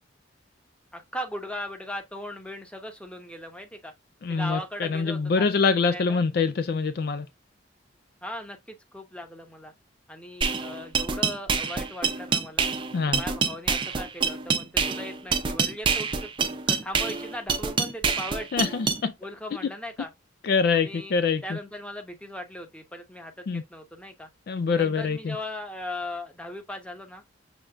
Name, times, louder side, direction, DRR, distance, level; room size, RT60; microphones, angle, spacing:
voice 1, 0.9-3.9 4.3-5.5 5.8-6.2 8.2-9.7 10.1-12.7 13.1-16.3 16.7-18.5 19.2-20.1 20.7-21.2 21.4-24.3 24.7-27.2, left 1 dB, 5° left, 0.8 m, -38 dB
voice 2, 4.2-7.3 12.9-13.2 18.5-19.1 20.4-21.6 23.5-23.6 24.5-25.4, left 5 dB, 55° left, 0.3 m, -25 dB
sound 1, 10.4-19.0, right 5 dB, 25° right, 0.5 m, -26 dB
6.4 x 3.2 x 2.3 m
head